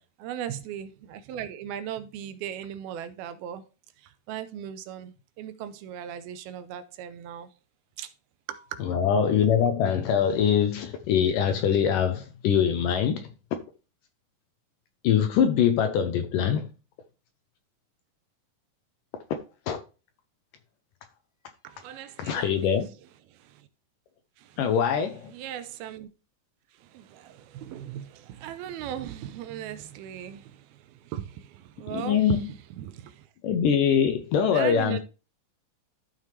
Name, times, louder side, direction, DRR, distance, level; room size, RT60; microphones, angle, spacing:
voice 1, 0.2-3.6 4.0-7.5 8.0-8.1 8.5-8.8 21.6-22.8 23.3-23.7 24.4-24.6 25.3-26.1 26.7-33.3 34.5-35.0, right 10 dB, 80° right, 2.5 m, -38 dB
voice 2, 8.8-13.3 15.0-16.7 19.7-19.8 22.2-22.9 24.6-25.3 31.9-32.4 33.4-35.0, left 8 dB, 80° left, 2.1 m, -23 dB
13.0 x 5.5 x 3.3 m
omnidirectional pair, 4.4 m